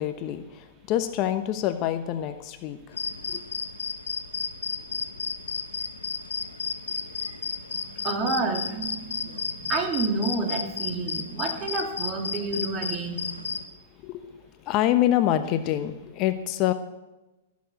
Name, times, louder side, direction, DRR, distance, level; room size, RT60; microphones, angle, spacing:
voice 1, 0.0-3.0 3.3-3.4 14.0-14.2 14.6-16.7, left 12 dB, 40° left, 10 dB, 0.9 m, -26 dB
sound 1, 2.9-13.6, left 5 dB, 85° left, 1.1 m, -33 dB
voice 2, 7.7-13.2, right 3 dB, 30° right, 3 dB, 2.9 m, -29 dB
16.0 x 7.4 x 7.7 m, 1.1 s
hypercardioid pair, 110°, 0 cm